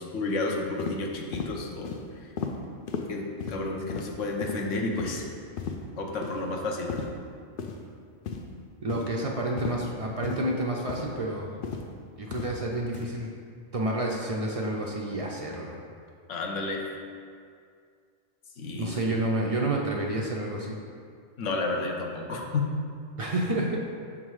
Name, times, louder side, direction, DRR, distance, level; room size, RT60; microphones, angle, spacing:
voice 1, 0.0-2.3 3.1-5.3 6.0-7.0 16.3-16.8 18.6-19.1 21.4-22.7, left 3 dB, 75° left, 0 dB, 1.1 m, -31 dB
sound 1, 0.8-1.0 1.3-1.5 1.8-2.0 2.4-2.5 2.9-3.0 3.4-3.6 3.9-4.1 4.4-4.6 5.0-5.2 5.6-5.8 6.2-6.4 6.9-7.1 7.6-7.8 8.3-8.5 8.9-9.1 9.6-9.8 10.2-10.4 10.9-11.1 11.6-11.9 12.3-12.5 12.9-13.1, left 6 dB, 60° left, 0.6 m, -34 dB
voice 2, 8.8-11.5 12.2-13.3 13.7-15.8 18.8-20.8 23.2-23.8, right 1 dB, 55° right, -2 dB, 0.4 m, -29 dB
6.4 x 3.7 x 4.7 m, 2.2 s
omnidirectional pair, 1.3 m